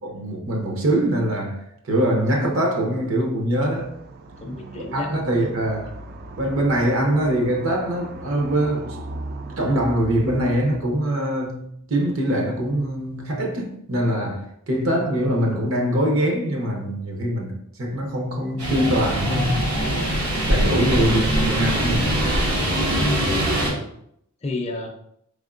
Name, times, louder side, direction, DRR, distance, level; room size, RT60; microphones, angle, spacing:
voice 1, 0.0-3.9 4.8-5.9 6.4-9.0 9.6-22.1, right 1 dB, 60° right, 0.8 m, -23 dB
sound 1, 3.7-10.8, right 2 dB, 45° right, 0.3 m, -38 dB
voice 2, 4.4-5.1 23.0-23.9 24.4-24.9, left 2 dB, 30° left, 0.4 m, -29 dB
sound 2, 18.6-23.7, right 1 dB, 90° right, 1.2 m, -22 dB
3.6 x 3.5 x 2.5 m
head